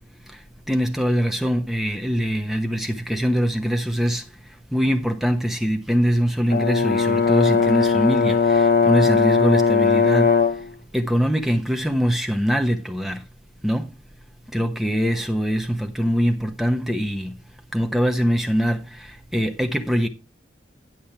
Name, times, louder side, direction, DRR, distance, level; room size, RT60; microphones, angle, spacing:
voice 1, 0.7-4.2 4.7-10.3 10.9-13.2 13.6-13.9 14.5-17.3 17.7-20.1, equal, ahead, 1.0 m, -23 dB
Brass instrument, 6.5-10.7, left 4 dB, 50° left, 0.6 m, -18 dB
10.5 x 6.4 x 4.4 m
head